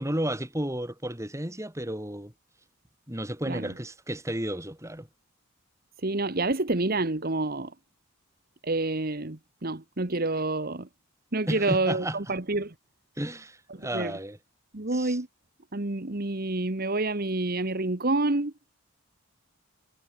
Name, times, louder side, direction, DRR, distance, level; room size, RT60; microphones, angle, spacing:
voice 1, 0.0-2.3 3.1-5.1 11.5-12.2 13.2-14.4 14.9-15.2, right 1 dB, 15° right, 3.6 m, -32 dB
voice 2, 6.0-7.7 8.6-10.9 11.3-12.7 13.7-14.1 14.7-15.3 15.7-18.5, right 2 dB, 40° right, 1.4 m, -28 dB
head